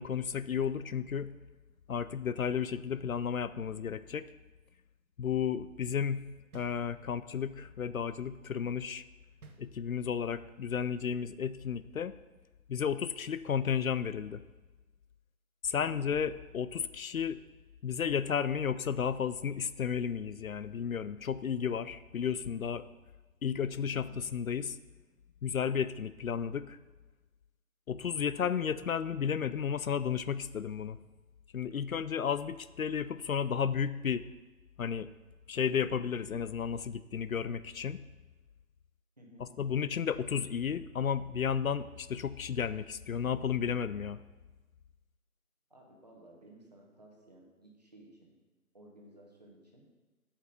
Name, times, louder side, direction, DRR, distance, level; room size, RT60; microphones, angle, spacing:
voice 1, 0.0-1.3 1.9-4.3 5.2-6.3 6.5-9.0 9.6-12.1 12.7-14.4 15.6-17.4 17.8-22.9 23.4-24.8 25.4-26.8 27.9-31.0 31.5-34.3 34.8-35.1 35.5-38.0 39.4-44.2, left 7 dB, 70° left, 15 dB, 0.5 m, -33 dB
sound 1, 6.5-7.4 9.4-10.3, right 3 dB, 75° right, 1.4 m, -56 dB
voice 2, 15.8-16.1 23.9-24.2 39.2-39.5 45.7-48.3 48.7-49.8, right 1 dB, 30° right, 0 dB, 1.3 m, -56 dB
8.8 x 7.3 x 5.2 m, 1.2 s
figure-of-eight pair, 180°, 44 cm